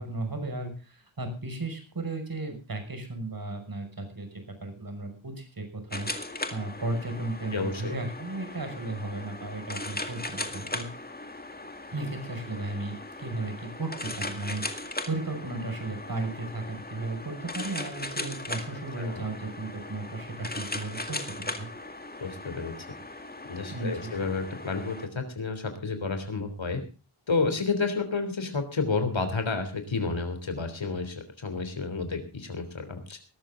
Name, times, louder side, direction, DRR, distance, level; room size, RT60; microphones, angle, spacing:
voice 1, 0.0-6.1 6.5-10.9 11.9-21.7 23.7-24.3, right 2 dB, 45° right, 6 dB, 6.2 m, -35 dB
sound 1, 5.9-25.1, left 2 dB, 20° left, 2.1 m, -38 dB
voice 2, 7.5-7.9 19.0-19.2 22.2-22.7 23.5-26.8 27.3-33.2, left 4 dB, 65° left, 8 dB, 3.6 m, -30 dB
19.5 x 13.5 x 3.8 m, 0.33 s
wide cardioid pair, 75°, 48 cm